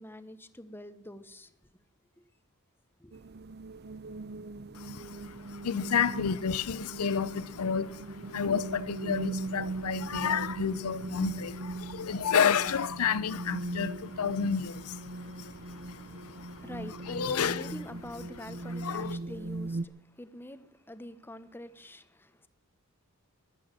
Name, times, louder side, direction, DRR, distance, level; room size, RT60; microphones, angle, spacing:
voice 1, 0.0-1.5 3.0-3.1 15.8-15.9 16.3-19.9 20.2-22.5, left 1 dB, 10° left, 1.1 m, -45 dB
sound 1, 3.1-19.8, right 2 dB, 45° right, 0.7 m, -39 dB
voice 2, 4.7-17.8 18.3-19.2, left 7 dB, 80° left, 0.6 m, -31 dB
sound 2, 13.4-18.0, left 3 dB, 60° left, 2.5 m, -62 dB
15.0 x 11.0 x 7.4 m
head